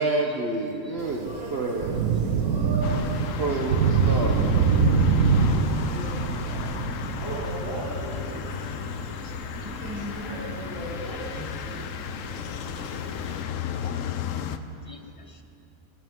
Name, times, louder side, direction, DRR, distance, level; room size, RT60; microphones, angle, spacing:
voice 1, 0.0-2.6 3.4-4.6, right 2 dB, 50° right, 0 dB, 1.0 m, -29 dB
Thunder / Rain, 1.0-13.4, right 5 dB, 90° right, 1.2 m, -26 dB
voice 2, 1.1-3.2 5.3-8.7 9.6-11.9, right 1 dB, 15° right, -9 dB, 3.3 m, -37 dB
sound 1, 2.8-14.6, left 8 dB, 70° left, 0.9 m, -34 dB
voice 3, 9.0-9.5 13.8-14.2 14.9-15.4, left 3 dB, 45° left, 5 dB, 0.4 m, -50 dB
20.5 x 11.5 x 3.7 m, 2.9 s
omnidirectional pair, 1.5 m